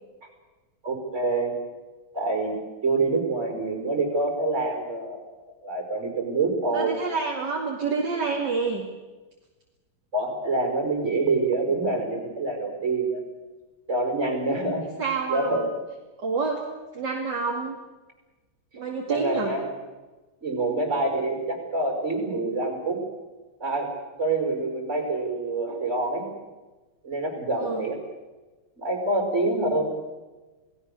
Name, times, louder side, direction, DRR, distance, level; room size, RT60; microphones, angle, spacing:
voice 1, 0.8-1.5 2.1-2.5 2.8-5.3 5.6-7.0 10.1-13.2 13.9-14.9 15.3-15.7 19.1-19.7 20.4-23.1 23.6-23.9 24.2-26.3 27.0-28.0 28.8-29.9, right 2 dB, 35° right, 4 dB, 5.5 m, -26 dB
voice 2, 6.7-8.9 15.0-15.5 16.2-16.6 16.9-17.8 18.7-19.5 27.6-27.9, right 4 dB, 55° right, -1 dB, 3.0 m, -28 dB
28.5 x 18.5 x 6.8 m, 1.2 s
omnidirectional pair, 2.2 m